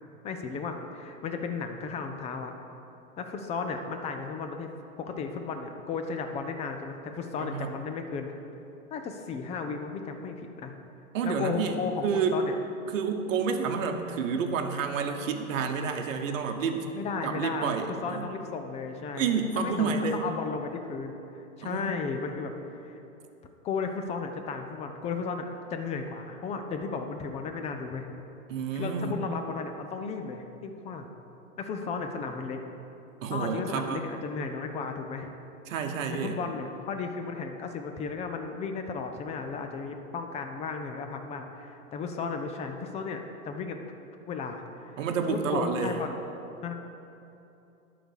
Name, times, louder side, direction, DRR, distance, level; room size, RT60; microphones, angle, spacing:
voice 1, 0.2-2.5 3.2-4.7 5.0-8.3 8.9-10.7 11.2-12.0 12.3-12.5 16.9-19.3 19.6-19.9 20.2-23.0 23.6-28.1 28.7-31.1 31.6-32.6 33.3-35.3 36.2-44.0 44.3-45.0 45.3-46.2 46.6-46.7, left 5 dB, 15° left, 5 dB, 0.5 m, -34 dB
voice 2, 7.4-7.7 11.1-12.4 12.9-16.8 17.2-18.3 19.1-20.2 21.6-22.0 28.5-29.1 33.2-34.1 35.7-36.4 45.0-46.0, right 5 dB, 65° right, 5 dB, 1.0 m, -29 dB
11.5 x 4.1 x 6.3 m, 2.9 s
hypercardioid pair, 115°, 42 cm